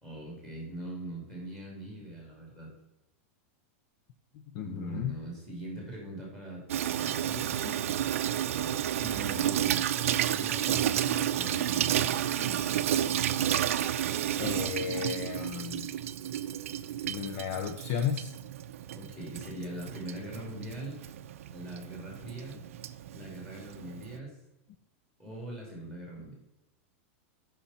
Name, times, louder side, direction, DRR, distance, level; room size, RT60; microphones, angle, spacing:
voice 1, 0.0-2.7 4.6-6.6 7.0-7.5 8.9-9.8 10.2-12.5 18.9-21.0 21.5-22.6 23.1-24.3 25.2-26.4, right 1 dB, 5° left, -2 dB, 2.8 m, -41 dB
voice 2, 4.5-5.1 7.6-7.9 8.5-8.8 11.5-12.0 12.4-12.7 13.1-15.9 17.0-18.3, left 8 dB, 35° left, 7 dB, 0.5 m, -36 dB
Water tap faucet / Sink (filling or washing), 6.7-24.2, right 11 dB, 80° right, 0.5 m, -31 dB
8.6 x 5.8 x 4.2 m, 0.91 s
supercardioid pair, 175°, 7 cm